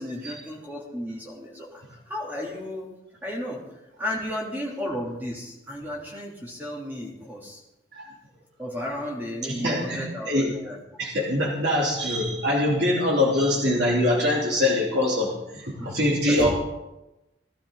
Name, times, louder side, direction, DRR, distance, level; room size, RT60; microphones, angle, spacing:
voice 1, 0.0-2.9 3.2-3.6 4.0-7.6 8.6-10.8 15.8-15.9 16.3-16.5, left 1 dB, 10° right, -3 dB, 3.3 m, -33 dB
voice 2, 9.5-10.5 11.0-16.5, left 1 dB, 70° right, -4 dB, 3.4 m, -23 dB
19.5 x 12.0 x 4.1 m, 0.96 s
head